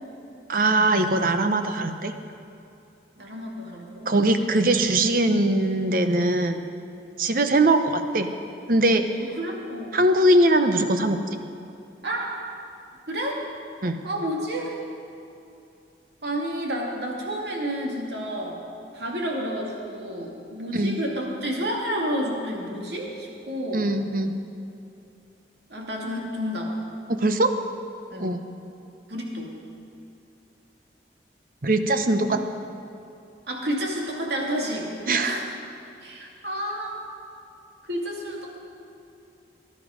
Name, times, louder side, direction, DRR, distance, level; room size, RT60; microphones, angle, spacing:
voice 1, 0.5-2.1 4.1-6.6 7.2-8.3 8.7-9.1 9.9-11.2 13.8-14.0 20.7-21.0 23.7-24.3 27.1-27.5 28.2-28.4 31.6-32.4 35.1-35.4, right 1 dB, 50° right, 8 dB, 0.9 m, -21 dB
voice 2, 3.2-4.1 9.4-10.0 12.0-12.3 13.1-13.4 14.0-14.8 16.2-18.6 18.9-23.9 25.7-26.7 28.1-28.3 29.1-29.5 32.3-32.4 33.5-34.9 35.2-35.6 36.0-37.0 37.9-38.6, equal, 70° right, -1 dB, 2.4 m, -30 dB
19.0 x 11.0 x 5.1 m, 2.7 s
head